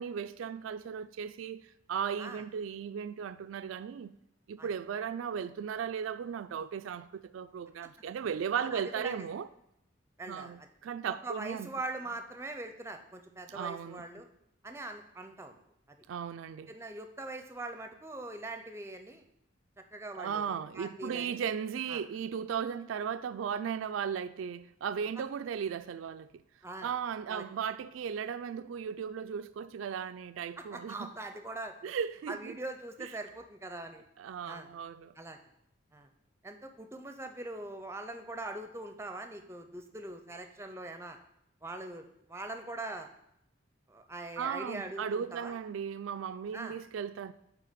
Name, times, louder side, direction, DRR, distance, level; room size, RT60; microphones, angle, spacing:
voice 1, 0.0-4.2 4.5-9.5 10.3-11.7 13.5-14.0 16.1-16.7 20.1-26.4 26.8-31.1 31.8-32.6 33.0-33.1 34.2-35.1 44.4-47.3, right 7 dB, 90° right, 0.3 m, -36 dB
voice 2, 8.5-9.3 10.2-10.7 11.1-14.3 14.6-15.6 16.7-19.2 19.9-21.4 21.9-22.0 26.6-26.9 27.3-27.4 30.6-31.9 32.3-34.0 34.4-34.7 35.2-35.4 35.9-36.1 36.4-41.2 41.6-43.1 43.9-45.6 46.5-46.8, right 2 dB, 15° right, 0.5 m, -42 dB
8.4 x 3.3 x 5.1 m
head